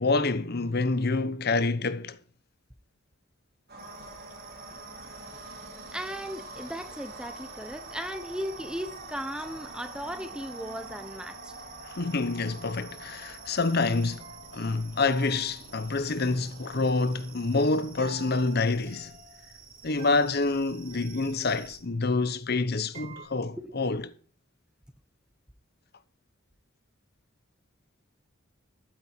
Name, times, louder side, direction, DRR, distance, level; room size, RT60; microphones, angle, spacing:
voice 1, 0.0-2.2 11.8-14.3 14.5-19.1 19.8-24.1, left 3 dB, 50° left, 0.8 m, -27 dB
sound 1, 3.7-17.3, right 1 dB, 50° right, 3.1 m, -46 dB
sound 2, 3.8-21.8, right 6 dB, 80° right, 3.6 m, -51 dB
voice 2, 5.9-11.6 23.6-23.8, equal, 5° right, 0.7 m, -37 dB
sound 3, 14.1-23.2, right 3 dB, 30° right, 5.9 m, -51 dB
12.5 x 9.0 x 4.5 m
head